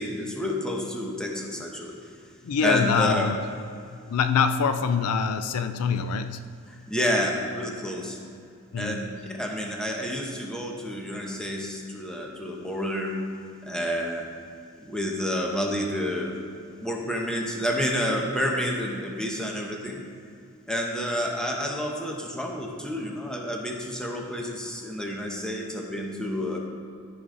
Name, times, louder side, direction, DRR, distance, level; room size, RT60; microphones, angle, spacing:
voice 1, 0.0-2.0 2.6-3.3 6.7-8.2 8.8-13.2 13.6-14.3 14.8-16.4 16.7-20.0 20.7-26.6, equal, 5° left, 0 dB, 0.9 m, -29 dB
voice 2, 2.4-3.4 4.1-6.5 8.7-9.0, left 6 dB, 75° left, 10 dB, 0.4 m, -24 dB
13.5 x 5.2 x 3.8 m, 2.4 s
head